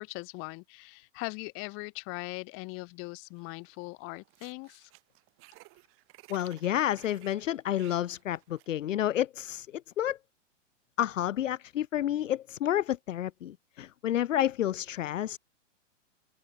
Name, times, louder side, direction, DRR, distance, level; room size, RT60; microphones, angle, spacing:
voice 1, 0.0-4.9, left 31 dB, 35° left, 1.8 m, -40 dB
sound 1, 3.4-3.8 4.1-8.7, right 22 dB, 35° right, 5.1 m, -57 dB
voice 2, 6.3-10.2 11.0-15.4, left 11 dB, 85° left, 0.6 m, -30 dB
hypercardioid pair, 125°, 37 cm